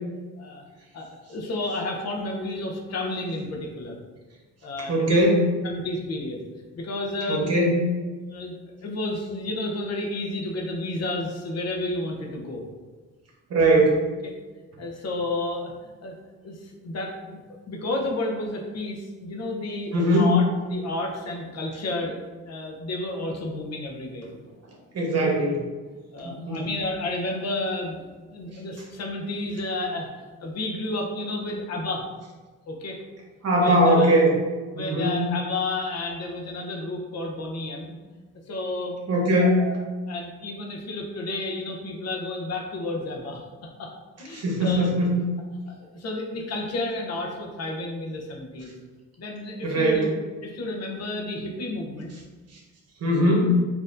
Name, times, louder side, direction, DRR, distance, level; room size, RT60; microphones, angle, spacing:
voice 1, 0.9-4.0 4.6-5.2 5.6-6.4 6.7-7.5 8.3-8.5 8.8-12.6 14.8-16.1 16.4-17.4 17.7-22.2 22.4-24.3 26.1-28.0 28.3-32.1 32.7-33.0 33.6-34.2 34.7-37.9 38.5-39.0 39.3-43.4 43.8-43.9 44.2-44.9 45.7-48.7 49.2-50.1 50.4-52.1, left 2 dB, 60° left, 0 dB, 0.8 m, -31 dB
voice 2, 4.9-5.4 7.3-7.8 13.5-14.0 19.9-20.3 24.9-25.7 26.2-26.6 33.4-34.3 34.7-35.3 39.1-39.7 44.3-45.2 49.6-50.0 53.0-53.4, right 1 dB, 55° right, -2 dB, 1.1 m, -20 dB
4.2 x 2.8 x 2.5 m, 1.3 s
cardioid pair, 90°, 30 cm